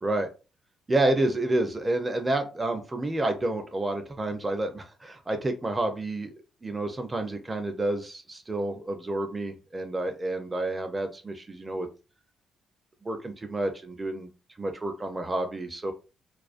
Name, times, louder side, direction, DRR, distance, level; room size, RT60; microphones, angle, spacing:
voice 1, 0.9-6.3 6.6-11.9 13.0-14.3 14.6-15.9, right 2 dB, 20° right, 5 dB, 0.4 m, -29 dB
2.4 x 2.2 x 2.4 m, 0.31 s
cardioid pair, 90°, 0 cm